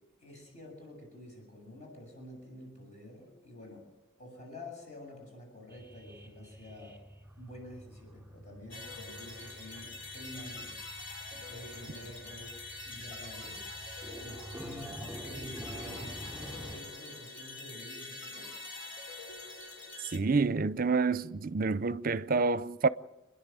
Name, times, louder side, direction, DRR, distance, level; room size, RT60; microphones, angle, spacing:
voice 1, 0.2-3.9 4.2-7.0 7.4-10.7 11.3-13.9 14.2-18.5, left 1 dB, 35° left, 7.7 m, -49 dB
sound 1, 5.7-16.8, equal, 10° right, 3.8 m, -48 dB
sound 2, 8.7-20.2, left 3 dB, 65° left, 4.1 m, -45 dB
voice 2, 20.1-22.9, right 4 dB, 45° right, 0.6 m, -28 dB
29.0 x 11.0 x 9.0 m
head